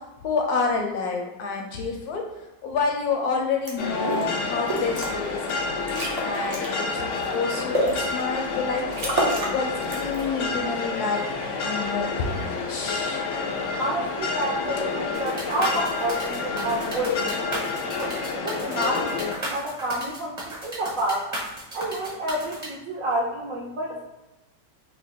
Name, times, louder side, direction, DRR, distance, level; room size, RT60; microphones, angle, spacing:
voice 1, 0.2-2.2 2.6-5.8 6.2-9.1 9.5-11.2 11.6-13.2, left 4 dB, 70° left, 1 dB, 1.0 m, -28 dB
sound 1, 3.7-3.8 4.0-4.3 4.7-5.1 5.5-5.6 5.9-6.7 7.2-8.0 8.5-8.6 8.9-9.6 9.8-10.2, right 1 dB, 55° right, 0.4 m, -27 dB
sound 2, 3.8-19.3, left 4 dB, 90° left, 0.6 m, -29 dB
voice 2, 13.8-21.3 21.7-24.0, right 1 dB, 70° right, -3 dB, 0.8 m, -29 dB
sound 3, 15.1-22.7, right 1 dB, 20° right, 0.8 m, -35 dB
3.0 x 2.7 x 4.1 m, 1.0 s
omnidirectional pair, 1.9 m